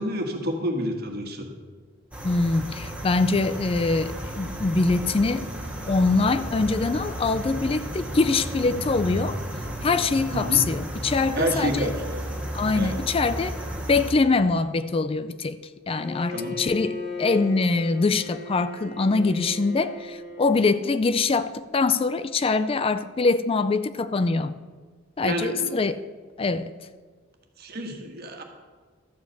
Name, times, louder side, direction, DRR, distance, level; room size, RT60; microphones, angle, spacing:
voice 1, 0.0-1.5 10.3-10.7 11.3-12.2 12.7-13.0 16.3-16.6 25.2-25.7 27.6-28.4, right 1 dB, 55° right, 3 dB, 1.7 m, -29 dB
sound 1, 2.1-14.1, right 1 dB, 5° right, 1.6 m, -33 dB
voice 2, 2.2-5.5 5.9-9.4 9.8-11.9 12.5-13.6 13.9-15.6 15.9-24.5 25.2-26.0 26.4-26.7, left 3 dB, 30° left, 13 dB, 0.4 m, -23 dB
Bowed string instrument, 15.9-20.7, left 3 dB, 60° left, 2.8 m, -37 dB
13.0 x 5.0 x 8.0 m, 1.5 s
head